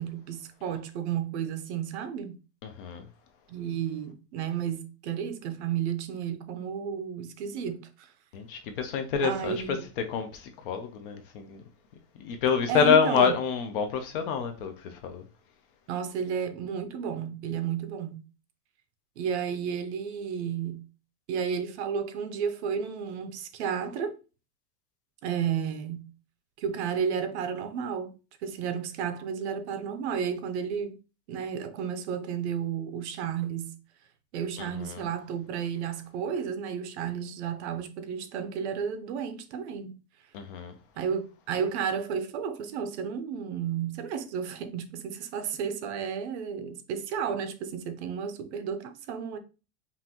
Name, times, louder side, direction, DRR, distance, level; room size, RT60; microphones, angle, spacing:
voice 1, 0.0-2.4 3.5-8.1 9.2-9.9 12.7-13.4 15.9-18.2 19.2-20.8 21.3-24.2 25.2-26.1 26.6-28.1 28.4-31.0 31.3-33.8 34.3-39.9 41.0-49.4, right 7 dB, 50° right, 0.6 m, -32 dB
voice 2, 2.6-3.0 8.3-9.6 10.1-11.6 12.2-15.2 34.6-35.0 40.3-40.7, left 6 dB, 40° left, 0.5 m, -27 dB
5.5 x 2.5 x 2.9 m
supercardioid pair, 175°, 44 cm